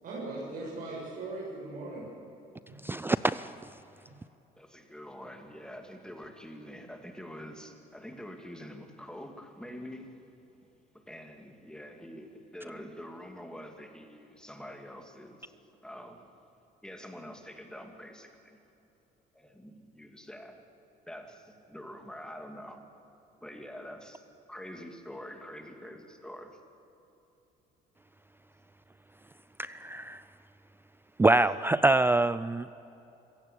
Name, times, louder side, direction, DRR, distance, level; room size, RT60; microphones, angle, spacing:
voice 1, 0.0-2.1, right 2 dB, 55° right, -6 dB, 7.6 m, -39 dB
voice 2, 2.8-3.5 29.6-30.2 31.2-32.7, right 2 dB, 15° right, 15 dB, 0.4 m, -25 dB
voice 3, 4.6-10.2 10.9-15.5 15.8-16.3 16.8-18.6 19.3-20.6 21.1-22.9 23.4-26.6, equal, 5° left, 4 dB, 2.6 m, -46 dB
25.5 x 16.5 x 8.7 m, 3.0 s
cardioid pair, 110°, 17 cm